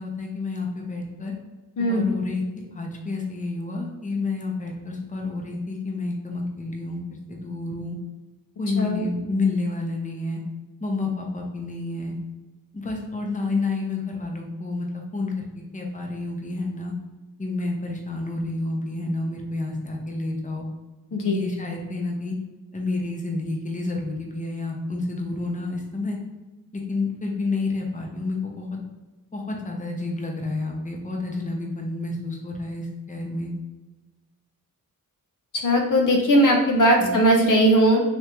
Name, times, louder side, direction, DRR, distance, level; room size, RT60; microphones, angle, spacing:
voice 1, 0.0-1.3 1.8-2.4 2.7-8.0 8.6-10.4 10.8-12.1 12.7-15.3 15.7-16.9 17.4-20.6 21.2-22.3 22.7-26.2 26.9-28.8 29.3-33.5 37.0-37.1, left 3 dB, 20° left, 0 dB, 0.7 m, -29 dB
voice 2, 1.8-2.1 8.8-9.1 21.1-21.4 35.6-38.0, equal, 60° left, 1 dB, 0.6 m, -19 dB
3.4 x 2.6 x 3.0 m, 1.2 s
cardioid pair, 70°, 36 cm